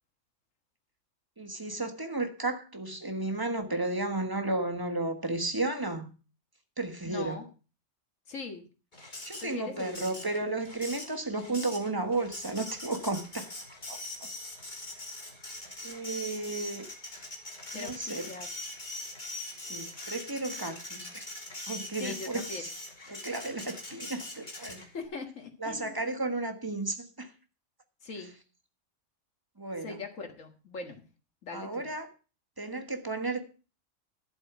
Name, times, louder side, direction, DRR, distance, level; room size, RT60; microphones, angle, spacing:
voice 1, 1.4-6.1 6.8-7.4 9.0-13.5 13.9-14.0 15.8-16.9 17.7-18.3 19.6-21.3 21.7-22.7 23.1-24.8 25.6-27.3 29.6-30.0 31.5-32.1 32.6-33.4, right 2 dB, 20° right, 1.4 m, -33 dB
voice 2, 7.0-7.4 8.3-8.7 9.4-10.1 17.7-18.5 22.0-22.6 24.7-26.0 28.0-28.3 29.8-31.0 31.4-31.9, left 4 dB, 90° left, 2.1 m, -41 dB
Printer, 8.9-25.1, left 2 dB, 40° left, 2.5 m, -42 dB
11.5 x 8.0 x 6.0 m
omnidirectional pair, 1.3 m